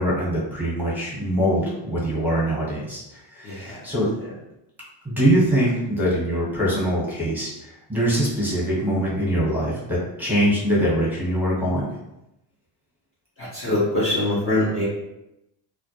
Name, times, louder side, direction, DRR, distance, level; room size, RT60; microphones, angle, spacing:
voice 1, 0.0-3.0 3.4-4.1 5.0-11.8, equal, 5° right, -6 dB, 0.8 m, -23 dB
voice 2, 3.4-3.8 13.4-14.8, left 1 dB, 30° left, -8 dB, 0.6 m, -23 dB
2.2 x 2.1 x 2.7 m, 0.88 s
cardioid pair, 125°, 48 cm